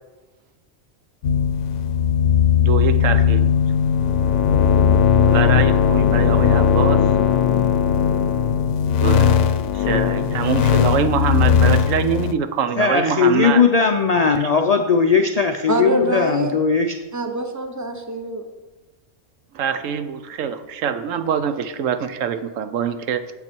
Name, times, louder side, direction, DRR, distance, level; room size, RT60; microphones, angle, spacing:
sound 1, 1.2-12.3, left 7 dB, 70° left, 0.9 m, -17 dB
voice 1, 2.5-3.5 5.3-7.1 9.0-9.4 9.7-13.6 19.5-23.2, right 7 dB, 80° right, 10 dB, 1.1 m, -24 dB
voice 2, 12.8-17.0, left 5 dB, 55° left, 4 dB, 0.4 m, -18 dB
voice 3, 15.7-16.5 17.1-18.4, right 1 dB, 15° right, 6 dB, 0.7 m, -24 dB
9.2 x 7.8 x 4.5 m, 1.2 s
omnidirectional pair, 1.3 m